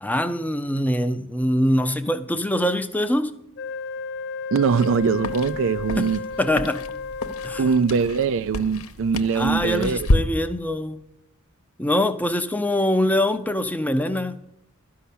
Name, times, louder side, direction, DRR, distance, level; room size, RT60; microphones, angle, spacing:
voice 1, 0.0-3.3 6.0-6.1 6.4-6.8 7.4-7.7 9.3-11.0 11.8-14.4, left 1 dB, 5° left, 0.5 m, -23 dB
Wind instrument woodwind instrument, 3.6-7.9, left 5 dB, 50° left, 0.6 m, -33 dB
voice 2, 4.5-6.3 7.6-10.1, right 5 dB, 60° right, 0.4 m, -22 dB
sound 1, 4.7-10.2, left 1 dB, 70° left, 0.9 m, -29 dB
12.5 x 5.6 x 8.4 m
head